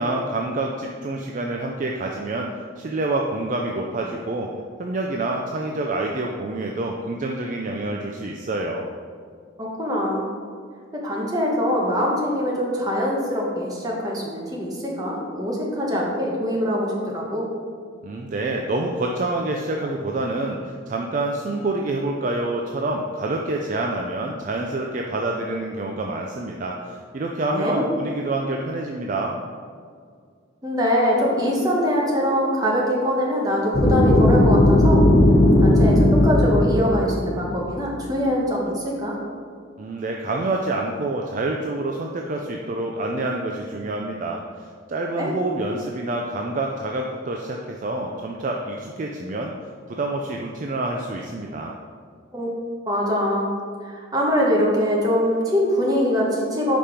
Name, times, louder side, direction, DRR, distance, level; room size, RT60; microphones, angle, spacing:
voice 1, 0.0-2.5 2.8-4.5 4.8-8.9 18.0-29.4 39.8-49.5 49.9-51.7, right 2 dB, 40° right, 1 dB, 0.4 m, -27 dB
voice 2, 9.6-10.3 10.9-17.5 27.5-27.9 30.6-35.0 35.6-39.2 45.2-45.3 52.3-52.5 52.9-53.5 53.8-56.8, equal, 20° right, -3 dB, 1.1 m, -23 dB
sound 1, 33.7-37.7, left 1 dB, 40° left, 0.8 m, -16 dB
5.2 x 4.3 x 5.0 m, 2.1 s
head